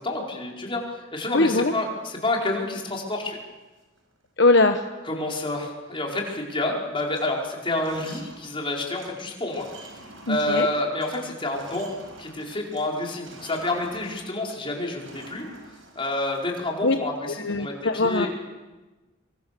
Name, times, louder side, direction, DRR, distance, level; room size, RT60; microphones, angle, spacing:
voice 1, 0.0-3.4 5.1-9.6 10.3-11.9 12.2-15.5 15.9-18.3, left 2 dB, 25° left, -1 dB, 4.9 m, -28 dB
voice 2, 1.3-1.7 4.4-4.9 10.3-10.7 16.8-17.0 17.4-18.3, left 2 dB, 60° left, 6 dB, 1.1 m, -21 dB
sound 1, 1.9-3.0 3.5-3.6 3.8-4.2 4.6-4.8 5.1-6.2 6.4-6.7 6.9-12.9 13.1-17.0, right 2 dB, 75° right, 5.4 m, -48 dB
25.0 x 24.0 x 6.9 m, 1.2 s
head